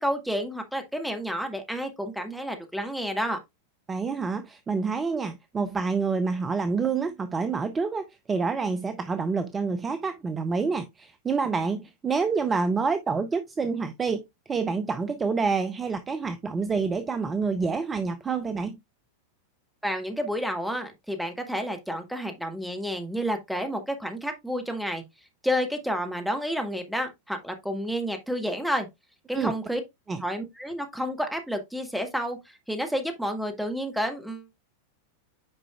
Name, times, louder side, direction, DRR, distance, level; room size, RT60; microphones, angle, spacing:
voice 1, 0.0-3.4 19.8-25.0 25.4-28.9 29.3-29.8 30.2-34.5, equal, ahead, 1.3 m, -30 dB
voice 2, 3.9-18.8 29.3-29.5 30.1-30.2, right 4 dB, 15° right, 0.6 m, -27 dB
8.6 x 5.0 x 2.3 m
figure-of-eight pair, 90°, 0 cm